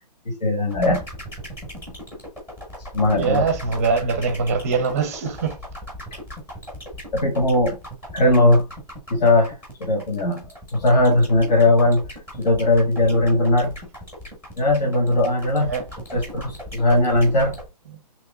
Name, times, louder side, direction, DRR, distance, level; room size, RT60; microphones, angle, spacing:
voice 1, 0.2-1.0 2.9-3.5 7.1-7.7 8.1-8.6 9.1-10.4 10.7-12.0 12.4-13.7 14.6-15.7 16.1-17.5, left 1 dB, 75° left, 1.3 m, -19 dB
sound 1, 0.7-17.7, equal, 10° left, 0.9 m, -37 dB
voice 2, 3.1-5.6 15.7-15.8, right 5 dB, 20° right, 0.5 m, -23 dB
3.0 x 2.9 x 3.5 m
hypercardioid pair, 175°, 21 cm